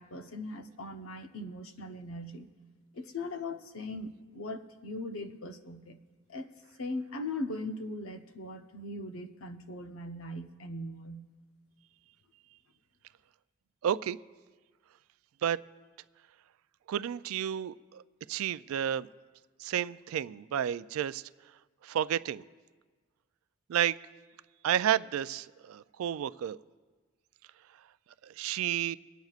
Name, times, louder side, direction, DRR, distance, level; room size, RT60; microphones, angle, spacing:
voice 1, 0.0-2.5 2.9-6.0 6.3-6.5 6.8-11.3, left 2 dB, 90° left, 0.7 m, -39 dB
voice 2, 13.8-14.2 15.4-15.6 16.9-18.0 18.3-19.1 19.6-21.2 21.8-22.4 23.7-23.9 24.6-26.6 28.2-29.0, right 10 dB, 90° right, 0.3 m, -31 dB
24.5 x 9.1 x 2.4 m
head